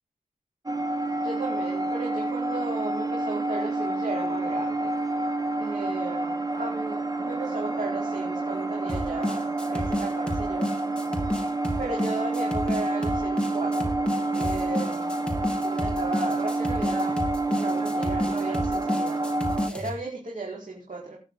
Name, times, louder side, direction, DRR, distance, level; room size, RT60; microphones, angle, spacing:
sound 1, 0.7-19.7, right 2 dB, 25° right, 1.2 m, -28 dB
voice 1, 1.2-4.9 5.6-10.7 11.8-13.9 14.3-15.1 15.6-17.2 17.6-19.2 19.7-21.1, right 2 dB, 65° right, -3 dB, 4.8 m, -35 dB
sound 2, 8.9-19.9, left 1 dB, 5° left, 3.5 m, -31 dB
19.0 x 10.5 x 4.0 m, 0.33 s
wide cardioid pair, 90°, 14 cm